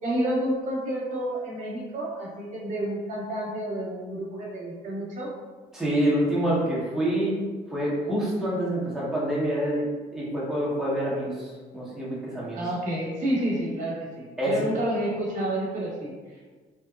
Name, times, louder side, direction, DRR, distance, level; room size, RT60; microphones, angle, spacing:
voice 1, 0.0-5.3 12.5-16.1, right 1 dB, 45° right, -4 dB, 0.9 m, -29 dB
voice 2, 5.7-7.4 7.7-9.9 10.1-12.6 14.4-14.6, right 1 dB, 5° right, -7 dB, 0.9 m, -26 dB
2.8 x 2.1 x 2.3 m, 1.4 s
cardioid pair, 110°, 17 cm